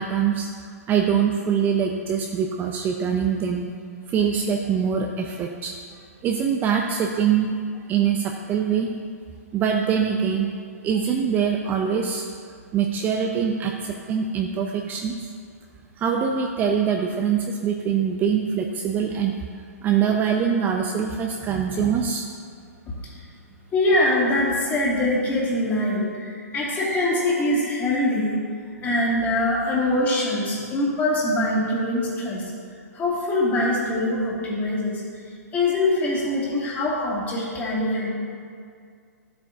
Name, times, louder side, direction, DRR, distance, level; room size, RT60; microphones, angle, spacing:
voice 1, 0.0-3.6 4.1-7.5 7.9-8.9 9.5-10.5 10.8-12.2 12.7-15.3 16.0-19.3 19.8-22.3, right 7 dB, 20° right, 2 dB, 0.5 m, -23 dB
voice 2, 23.7-28.4 28.8-32.5 32.9-35.0 35.5-38.1, left 1 dB, 20° left, -5 dB, 2.3 m, -23 dB
12.5 x 7.7 x 2.7 m, 2.2 s
hypercardioid pair, 125°, 9 cm